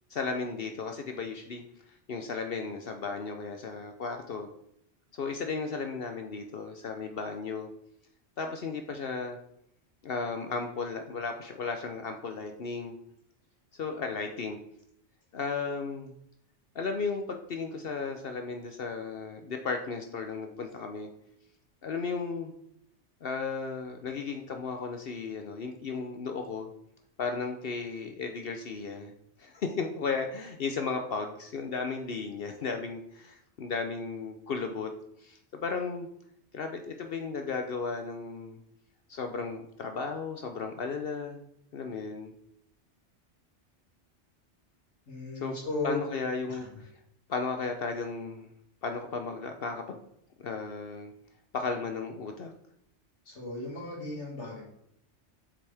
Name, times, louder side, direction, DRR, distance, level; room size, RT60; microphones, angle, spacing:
voice 1, 0.1-1.6 2.1-4.5 5.1-7.7 8.4-9.4 10.0-13.0 13.7-14.6 15.3-16.1 16.7-21.1 21.8-22.5 23.2-26.7 27.2-29.1 29.4-34.9 35.2-36.1 36.5-38.6 39.1-41.4 41.7-42.3 45.4-45.6 45.8-46.9 47.3-48.5 48.8-50.0 50.4-51.1 51.5-52.5, left 4 dB, 60° left, 5 dB, 0.9 m, -35 dB
voice 2, 45.1-46.0 46.5-46.7 53.3-54.6, left 2 dB, 85° left, -3 dB, 2.6 m, -36 dB
8.0 x 6.1 x 3.4 m, 0.73 s
omnidirectional pair, 1.2 m